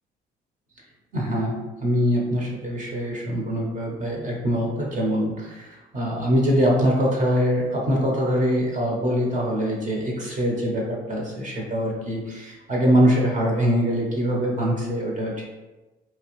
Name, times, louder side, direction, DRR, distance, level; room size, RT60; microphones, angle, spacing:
voice 1, 1.1-15.4, equal, 40° right, -2 dB, 0.9 m, -23 dB
2.9 x 2.2 x 3.0 m, 1.1 s
cardioid pair, 90°, 20 cm